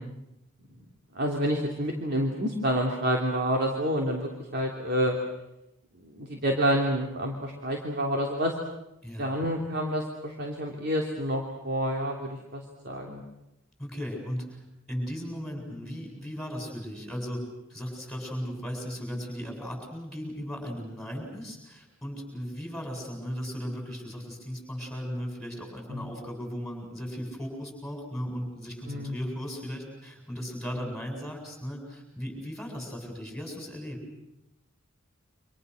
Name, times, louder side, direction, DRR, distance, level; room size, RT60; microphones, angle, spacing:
voice 1, 1.1-5.2 6.0-8.5 9.2-13.2 25.9-26.1 28.9-29.2, equal, 55° right, 0 dB, 3.2 m, -28 dB
voice 2, 13.8-14.6 14.9-17.4 17.7-34.0, equal, 5° left, 2 dB, 7.7 m, -36 dB
28.5 x 26.0 x 6.5 m, 0.90 s
head